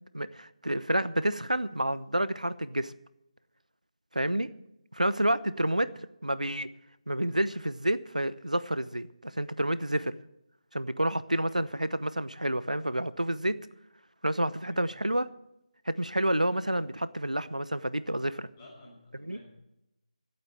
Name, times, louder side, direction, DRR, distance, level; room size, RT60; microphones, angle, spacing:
voice 1, 0.1-2.9 4.1-4.5 4.9-5.9 6.2-6.7 7.1-10.1 10.7-13.6 14.2-15.3 15.9-18.5 19.2-19.4, right 1 dB, 90° right, 16 dB, 0.8 m, -29 dB
voice 2, 18.6-19.5, left 1 dB, 20° left, -6 dB, 7.2 m, -53 dB
16.5 x 8.7 x 7.4 m, 0.87 s
figure-of-eight pair, 160°, 4 cm